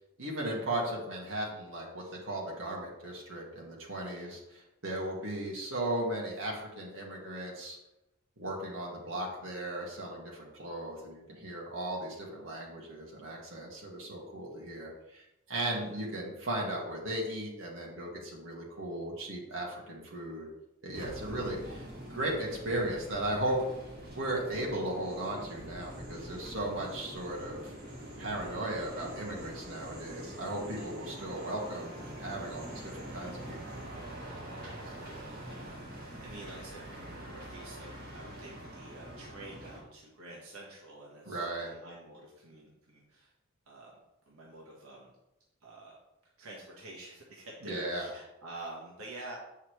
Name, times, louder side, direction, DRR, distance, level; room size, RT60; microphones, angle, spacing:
voice 1, 0.2-7.8 8.4-20.5 20.8-23.6 24.2-27.7 28.2-33.6 41.3-41.7 47.6-48.0, right 1 dB, 60° right, -3 dB, 1.9 m, -36 dB
voice 2, 4.0-4.3 12.1-12.5 15.6-16.0 21.7-21.8 26.1-26.4 28.4-28.8 32.5-32.8 34.5-43.3 43.7-43.9 44.3-45.1 45.6-46.0 46.4-49.4, right 2 dB, 80° right, -4 dB, 1.4 m, -49 dB
sound 1, 20.9-39.8, right 1 dB, 45° right, 2.0 m, -44 dB
8.2 x 5.6 x 3.2 m, 0.92 s
head